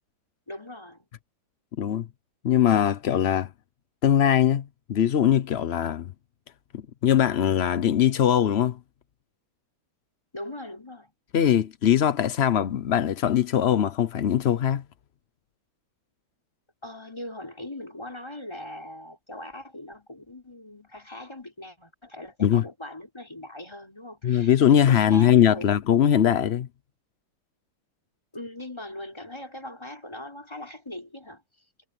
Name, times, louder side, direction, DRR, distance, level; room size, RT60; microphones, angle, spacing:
voice 1, 0.5-1.1 10.3-11.1 16.8-25.8 28.3-31.4, left 1 dB, 15° left, 4.5 m, -40 dB
voice 2, 1.8-2.1 2.4-3.5 4.0-6.1 6.7-8.8 11.3-14.8 22.4-22.6 24.2-26.7, left 10 dB, 70° left, 0.6 m, -21 dB
omnidirectional pair, 2.1 m